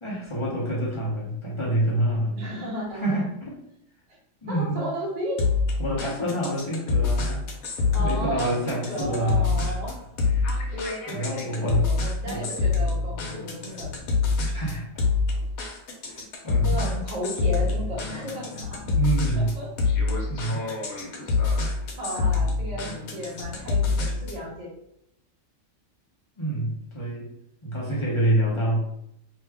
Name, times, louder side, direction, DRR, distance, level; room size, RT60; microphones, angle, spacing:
voice 1, 0.0-2.4 3.0-3.6 4.4-4.8 5.8-7.4 8.0-9.6 11.1-11.9 12.2-12.4 14.5-14.9 16.1-16.8 18.8-19.5 20.3-20.6 26.4-27.3 27.6-28.8, right 1 dB, 30° left, -6 dB, 0.6 m, -27 dB
voice 2, 2.4-3.2 4.1-4.2 4.5-5.4 7.9-10.0 10.7-14.0 16.6-18.8 19.3-19.7 20.8-20.9 22.0-24.7, equal, 40° right, -4 dB, 0.6 m, -34 dB
sound 1, 5.4-24.5, left 4 dB, 75° left, 1.1 m, -26 dB
2.7 x 2.2 x 3.4 m, 0.77 s
omnidirectional pair, 1.5 m